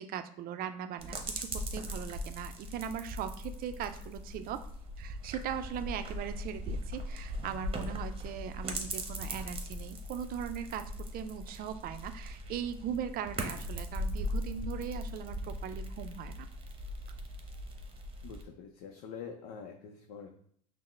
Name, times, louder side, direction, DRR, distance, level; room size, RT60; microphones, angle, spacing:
voice 1, 0.0-4.7 5.0-16.5, right 9 dB, 50° right, 9 dB, 0.4 m, -39 dB
sound 1, 1.0-18.4, equal, 30° right, 0.9 m, -39 dB
voice 2, 18.2-20.3, left 6 dB, 75° left, 3 dB, 0.5 m, -45 dB
5.6 x 2.1 x 3.1 m, 0.64 s
supercardioid pair, 85°, 19 cm